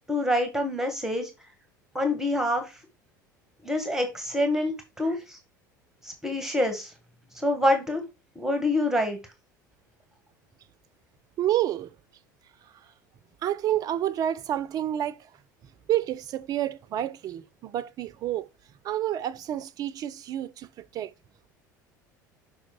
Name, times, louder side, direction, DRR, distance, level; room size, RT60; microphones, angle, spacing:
voice 1, 0.1-1.3 1.9-2.8 3.6-5.4 6.0-6.9 7.3-8.0 8.3-9.2, left 1 dB, 5° right, 1.5 m, -26 dB
voice 2, 11.4-11.9 13.4-15.3 15.9-18.5 18.8-21.1, right 12 dB, 40° right, 0.6 m, -29 dB
6.4 x 4.8 x 4.5 m
figure-of-eight pair, 70°, 10 cm